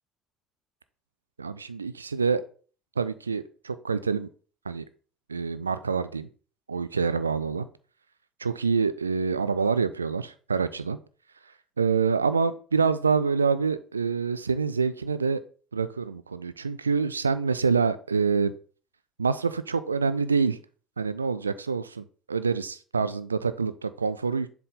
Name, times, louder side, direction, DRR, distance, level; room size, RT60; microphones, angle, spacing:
voice 1, 1.4-2.4 3.0-4.3 4.7-4.8 5.3-6.3 6.7-7.7 8.4-11.0 11.8-15.4 15.7-18.5 19.2-20.6 21.0-24.5, right 5 dB, 80° right, 14 dB, 0.3 m, -26 dB
7.5 x 3.5 x 3.9 m, 0.40 s
figure-of-eight pair, 60°, 0 cm